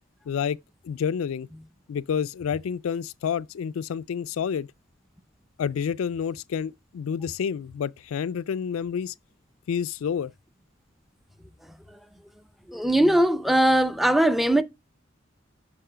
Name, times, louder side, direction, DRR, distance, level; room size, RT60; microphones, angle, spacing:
voice 1, 0.3-0.6 0.8-1.5 1.9-4.7 5.6-9.1 9.7-10.3, left 7 dB, 80° left, 0.3 m, -29 dB
voice 2, 12.7-14.6, right 1 dB, ahead, 0.4 m, -20 dB
6.8 x 5.6 x 5.0 m
head